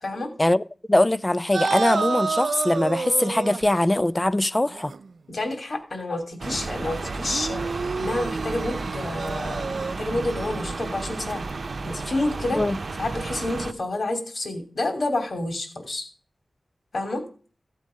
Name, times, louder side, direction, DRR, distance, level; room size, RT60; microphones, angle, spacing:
voice 1, 0.0-0.3 5.3-7.6 8.0-11.4 11.8-12.6 13.0-16.0 16.9-17.2, left 2 dB, 60° left, 3.1 m, -29 dB
voice 2, 0.9-4.9 12.5-12.8, left 1 dB, 20° left, 0.6 m, -21 dB
sound 1, 1.5-3.7 4.7-5.1 7.2-9.9, right 4 dB, 80° right, 0.5 m, -29 dB
sound 2, 6.4-13.7, right 3 dB, 60° right, 0.9 m, -32 dB
15.0 x 8.5 x 5.2 m
wide cardioid pair, 70°, 0 cm